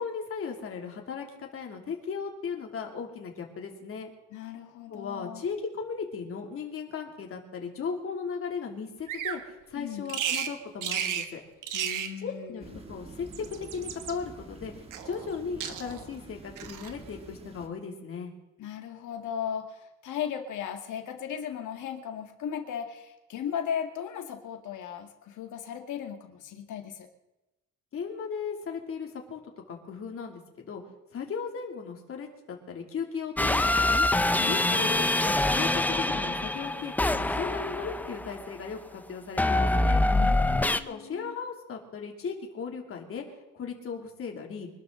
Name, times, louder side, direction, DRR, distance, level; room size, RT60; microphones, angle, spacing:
voice 1, 0.0-4.1 4.9-11.4 12.2-13.4 13.7-18.3 27.9-29.4 29.7-30.8 31.1-34.1 34.5-40.0 40.9-43.2 43.5-44.7, left 5 dB, 45° left, 2 dB, 2.9 m, -37 dB
voice 2, 4.3-5.4 9.8-10.2 11.7-12.8 18.6-27.1 34.4-34.9 40.1-41.4, left 8 dB, 75° left, 5 dB, 2.1 m, -37 dB
Bird vocalization bird call bird song, 9.1-9.4 10.1-10.5 10.8-11.3 11.6-12.1 13.1-14.1 14.9-15.3 15.6-16.1 16.6-16.9, right 9 dB, 85° right, 1.4 m, -33 dB
sound 1, 12.6-17.7, right 2 dB, 20° right, 1.7 m, -47 dB
sound 2, 33.4-38.5 39.4-40.8, left 2 dB, 5° left, 0.5 m, -25 dB
24.5 x 12.5 x 3.9 m, 0.97 s
cardioid pair, 145°, 31 cm